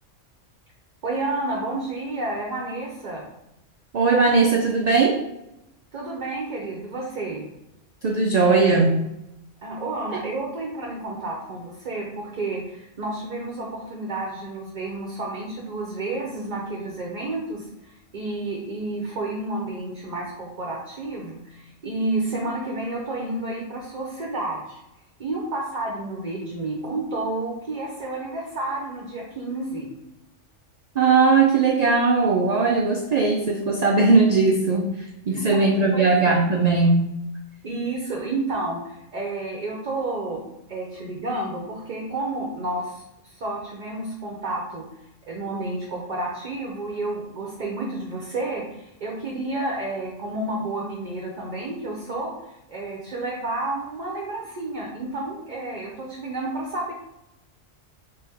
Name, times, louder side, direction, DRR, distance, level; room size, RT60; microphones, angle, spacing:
voice 1, 1.0-3.2 5.9-7.5 9.6-24.8 25.2-29.9 35.3-35.6 35.9-36.4 37.6-44.9 45.3-56.9, right 2 dB, 45° right, -2 dB, 0.6 m, -30 dB
voice 2, 3.9-5.2 8.0-8.9 31.0-37.2, right 4 dB, 85° right, 0 dB, 0.3 m, -19 dB
3.4 x 3.3 x 3.4 m, 0.89 s
omnidirectional pair, 1.3 m